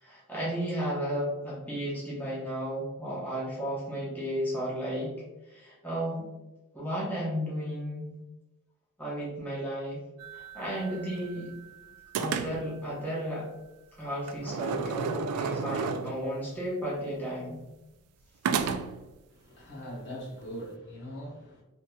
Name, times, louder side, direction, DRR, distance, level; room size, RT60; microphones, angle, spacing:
voice 1, 0.0-5.2 5.5-6.3 6.7-8.1 9.0-10.0 10.3-11.5 12.2-13.5 14.0-17.6, equal, 10° left, 0.9 m, -33 dB
sound 1, 10.2-11.7 12.1-12.8 14.3-16.4 18.4-19.1, right 6 dB, 80° right, 0.3 m, -33 dB
voice 2, 19.3-21.6, equal, 50° left, 1.0 m, -41 dB
3.5 x 2.8 x 2.2 m
head